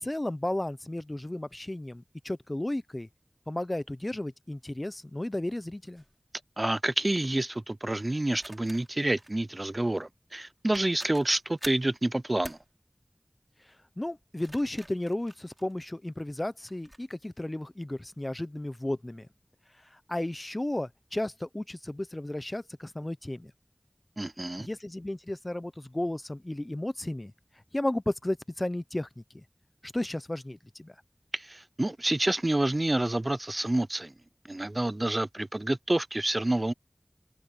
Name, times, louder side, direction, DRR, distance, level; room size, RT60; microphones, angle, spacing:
voice 1, 0.0-3.1 3.5-6.0 14.0-19.3 20.1-23.5 24.6-27.3 27.7-29.4 29.8-30.9, left 1 dB, 35° left, 0.8 m, -33 dB
sound 1, 6.0-6.2 8.3-9.4 10.4-10.5 10.7-11.9 12.4-12.7 14.2-16.1 16.7-17.0, right 1 dB, 25° right, 3.8 m, -46 dB
voice 2, 6.6-12.6 24.2-24.7 31.3-34.1 34.5-36.7, right 1 dB, 45° right, 0.5 m, -28 dB
wide cardioid pair, 45°, 0 cm